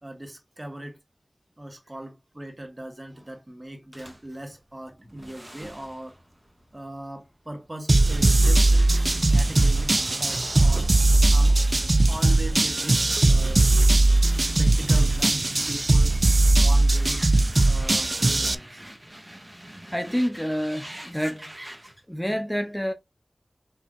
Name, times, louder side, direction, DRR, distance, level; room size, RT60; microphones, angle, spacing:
voice 1, 0.0-1.0 1.6-6.1 6.7-8.9 9.3-9.9 10.2-10.9 11.3-11.6 12.1-13.0 13.3-13.7 14.3-16.2 16.5-17.2 17.7-18.8, right 1 dB, 30° right, 1.6 m, -39 dB
sound 1, 3.9-8.2 8.5-13.5 14.0-22.0, right 1 dB, 15° right, 1.4 m, -46 dB
sound 2, 7.9-18.5, right 2 dB, 50° right, 0.4 m, -19 dB
voice 2, 19.9-21.6 22.1-22.9, equal, 5° left, 0.6 m, -28 dB
5.6 x 3.4 x 2.5 m
wide cardioid pair, 45°, 0 cm